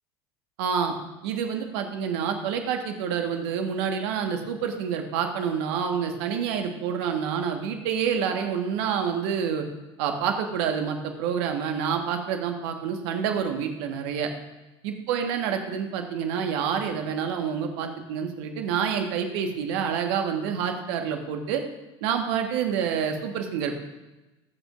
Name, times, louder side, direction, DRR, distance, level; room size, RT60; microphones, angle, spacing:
voice 1, 0.6-0.9 1.2-9.6 10.0-14.3 14.8-21.6 22.0-23.8, right 7 dB, 65° right, 5 dB, 1.5 m, -28 dB
20.5 x 8.1 x 2.5 m, 1.1 s
figure-of-eight pair, 70°, 15 cm